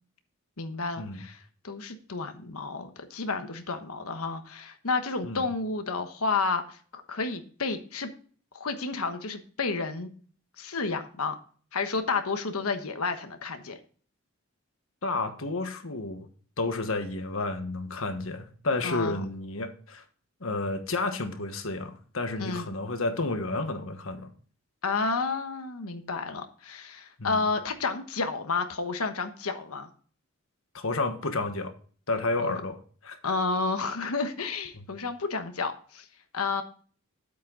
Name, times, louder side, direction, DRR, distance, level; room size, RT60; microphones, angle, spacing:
voice 1, 0.6-1.4 1.6-8.1 8.5-10.1 10.6-11.4 11.7-13.8 18.8-19.2 22.4-22.7 24.8-29.9 32.4-32.6 33.2-36.1 36.3-36.6, left 4 dB, 85° left, 7 dB, 1.2 m, -31 dB
voice 2, 15.0-16.3 16.6-20.0 20.4-24.3 27.2-27.4 30.7-31.7 32.1-33.3 34.7-34.9, left 2 dB, 70° left, 7 dB, 1.4 m, -31 dB
8.9 x 8.3 x 3.9 m, 0.43 s
head